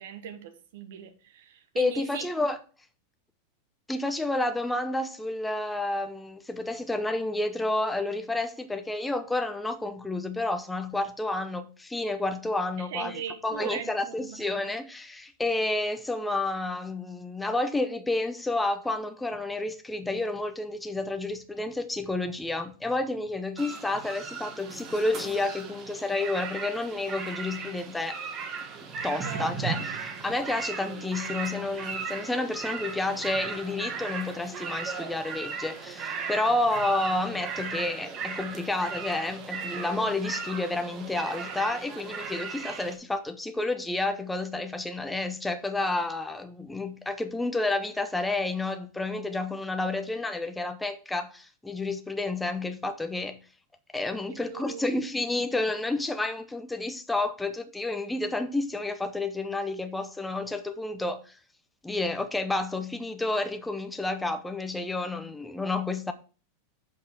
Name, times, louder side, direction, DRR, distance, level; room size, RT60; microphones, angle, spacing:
voice 1, 0.0-2.3 12.8-14.4 29.0-29.9 54.3-54.9, right 8 dB, 75° right, 1.4 m, -39 dB
voice 2, 1.8-2.6 3.9-28.2 29.0-53.4 53.9-61.4 61.8-66.1, left 2 dB, 5° left, 0.6 m, -30 dB
sound 1, 23.6-43.0, right 5 dB, 35° right, 1.4 m, -37 dB
6.5 x 5.6 x 4.5 m
supercardioid pair, 140°, 0 cm